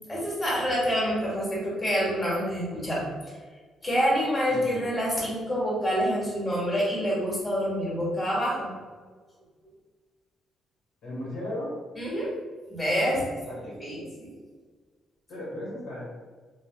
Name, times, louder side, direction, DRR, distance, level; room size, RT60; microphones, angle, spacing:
voice 1, 0.1-3.0 3.8-8.7 12.0-12.3 12.7-13.2 13.8-14.3, equal, 25° left, -6 dB, 1.2 m, -27 dB
voice 2, 4.5-4.9 11.0-11.7 13.5-13.7 15.3-16.1, left 1 dB, 85° left, -6 dB, 1.2 m, -36 dB
3.2 x 2.3 x 2.2 m, 1.4 s
cardioid pair, 90°, 0 cm